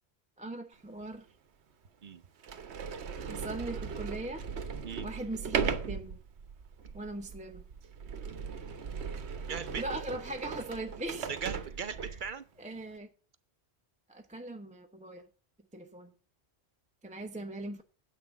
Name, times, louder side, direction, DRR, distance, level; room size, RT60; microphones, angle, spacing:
voice 1, 0.4-1.3 3.2-4.5 5.0-6.2 6.9-7.6 9.8-11.3 12.1-12.2 12.6-13.1 14.1-15.3 15.7-16.1 17.0-17.8, right 2 dB, 10° right, 0.7 m, -40 dB
Sliding door, 1.0-1.1 1.8-1.9 2.4-12.3, right 6 dB, 75° right, 1.2 m, -38 dB
voice 2, 9.4-9.8 11.3-12.4, right 6 dB, 50° right, 0.8 m, -39 dB
8.3 x 6.2 x 7.0 m
omnidirectional pair, 1.1 m